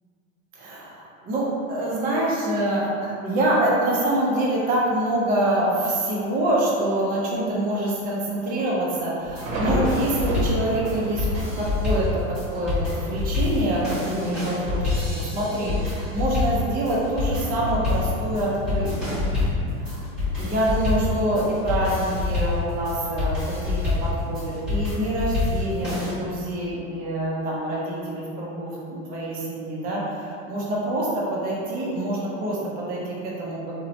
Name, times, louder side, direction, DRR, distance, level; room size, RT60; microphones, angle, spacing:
voice 1, 0.5-19.2 19.8-20.1 20.3-33.7, right 1 dB, 25° right, -5 dB, 0.4 m, -26 dB
Thunder, 5.2-5.8 6.3-6.4 6.7-7.1 7.5-7.6 8.3-24.5, right 1 dB, 85° right, 0.7 m, -37 dB
sound 1, 9.2-26.1, left 3 dB, ahead, 0.9 m, -27 dB
2.9 x 2.0 x 2.7 m, 2.5 s
supercardioid pair, 135°, 40 cm